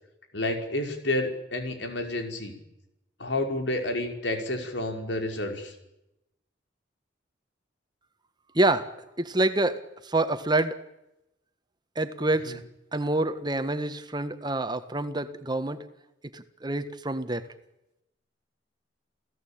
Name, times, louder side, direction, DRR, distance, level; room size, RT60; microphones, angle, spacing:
voice 1, 0.3-2.5 3.2-5.7 12.4-12.6, left 1 dB, 80° left, 5 dB, 5.4 m, -30 dB
voice 2, 8.5-8.9 9.2-9.8 10.0-10.8 11.9-12.6 12.9-15.8 16.3-17.4, right 2 dB, 25° right, 10 dB, 1.5 m, -27 dB
29.5 x 17.0 x 8.9 m, 0.89 s
head